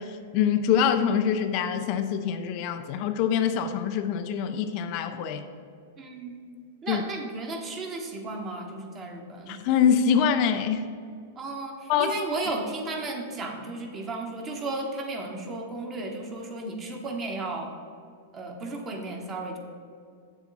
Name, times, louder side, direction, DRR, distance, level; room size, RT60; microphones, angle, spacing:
voice 1, 0.0-5.4 6.9-7.0 9.5-10.9 11.9-12.1, left 7 dB, 45° left, 8 dB, 0.5 m, -25 dB
voice 2, 6.0-6.4 6.8-9.6 11.4-17.7 18.3-19.6, right 2 dB, 25° right, 2 dB, 1.2 m, -34 dB
8.0 x 7.1 x 4.1 m, 2.3 s
hypercardioid pair, 140°, 0 cm